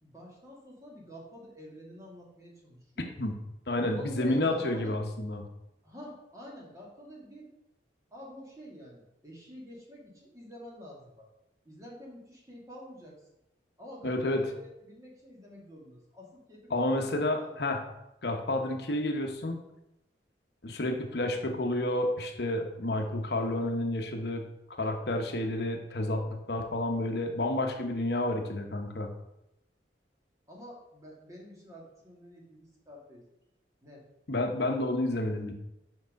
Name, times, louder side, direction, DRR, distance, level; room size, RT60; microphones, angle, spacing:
voice 1, 0.0-3.1 3.8-5.0 5.8-7.5 8.1-11.3 11.6-13.2 13.8-14.6 14.8-17.7 30.5-33.2 33.8-34.0, equal, 20° right, -3 dB, 1.8 m, -48 dB
voice 2, 3.7-5.4 14.0-14.4 16.7-17.8 18.2-19.6 20.6-24.5 24.8-29.1 34.3-35.5, left 1 dB, 65° left, 3 dB, 0.9 m, -30 dB
5.9 x 5.4 x 5.1 m, 0.87 s
head